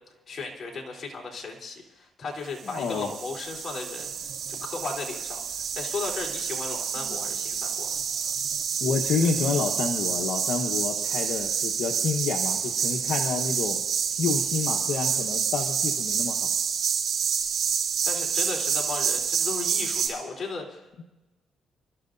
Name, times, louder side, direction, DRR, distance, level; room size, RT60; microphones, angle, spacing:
voice 1, 0.3-4.1 4.6-5.4 5.8-7.9 18.0-21.0, left 3 dB, 45° left, 0 dB, 3.8 m, -35 dB
voice 2, 2.6-3.1 6.9-7.2 8.8-13.8 14.2-16.5, left 5 dB, 75° left, 2 dB, 1.2 m, -29 dB
sound 1, 2.6-20.1, right 7 dB, 65° right, 5.6 m, -28 dB
29.5 x 13.5 x 2.7 m, 1.1 s
cardioid pair, 90°, 0 cm